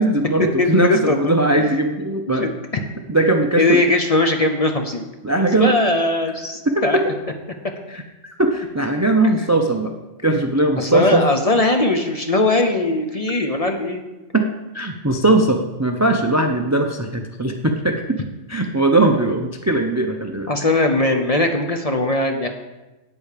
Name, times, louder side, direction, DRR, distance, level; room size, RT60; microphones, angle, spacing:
voice 1, 0.0-2.5 3.1-3.8 5.2-5.7 6.7-7.1 7.9-9.9 10.2-11.2 14.3-14.5 14.7-18.2 18.5-20.5, right 2 dB, 20° right, 5 dB, 0.4 m, -19 dB
voice 2, 0.6-1.7 2.3-2.8 3.6-5.1 5.6-7.0 10.8-14.0 20.5-22.5, left 2 dB, 35° left, 5 dB, 0.8 m, -20 dB
8.8 x 8.3 x 6.6 m, 1.1 s
omnidirectional pair, 1.3 m